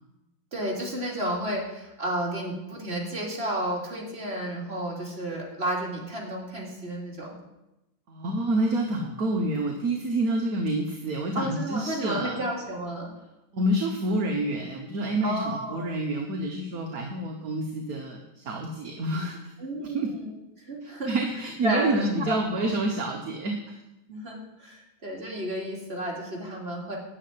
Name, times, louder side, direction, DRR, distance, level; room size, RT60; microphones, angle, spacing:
voice 1, 0.5-7.3 11.3-13.1 15.2-15.9 19.6-21.1 21.6-22.7 24.1-27.0, right 1 dB, 30° right, -2 dB, 3.3 m, -32 dB
voice 2, 8.1-12.4 13.5-19.4 19.9-20.1 20.8-23.8, right 1 dB, 50° right, 2 dB, 1.5 m, -28 dB
11.0 x 7.1 x 9.3 m, 0.94 s
omnidirectional pair, 2.3 m